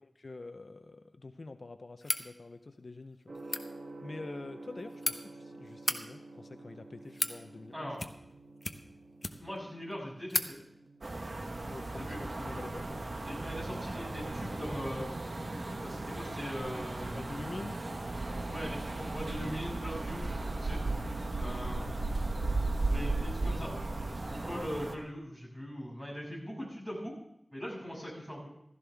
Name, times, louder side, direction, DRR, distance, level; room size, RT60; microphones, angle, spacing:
voice 1, 0.0-3.4 4.0-7.9 11.6-13.0 17.1-17.8, left 3 dB, 60° left, 8 dB, 0.7 m, -46 dB
sound 1, 2.0-2.3 3.3-3.6 4.6-5.1 5.7-6.0 6.8-7.4 7.9-8.3 8.6-9.6 9.9-10.0 10.3-10.5, left 2 dB, 35° left, 0.9 m, -34 dB
Gong, 3.3-21.1, right 2 dB, 80° right, 2.0 m, -53 dB
voice 2, 9.4-10.6 12.1-12.2 13.3-15.1 15.8-17.1 18.5-20.8 21.4-21.9 22.9-23.7 24.3-27.2 27.5-28.4, equal, 10° right, -3 dB, 6.5 m, -41 dB
sound 2, 11.0-24.9, right 2 dB, 55° right, 1.2 m, -36 dB
15.0 x 14.0 x 3.5 m, 0.81 s
wide cardioid pair, 80°, 0 cm